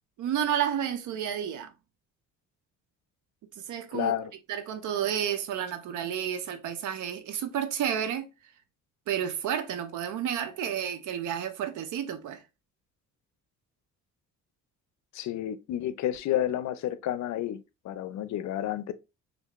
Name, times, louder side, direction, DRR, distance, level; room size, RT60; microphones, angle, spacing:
voice 1, 0.2-1.7 3.6-4.1 4.5-8.3 9.1-12.4, right 9 dB, 80° right, 0.7 m, -31 dB
voice 2, 3.9-4.3 15.1-18.9, left 12 dB, 65° left, 0.5 m, -30 dB
3.3 x 2.6 x 2.9 m
cardioid pair, 90°, 30 cm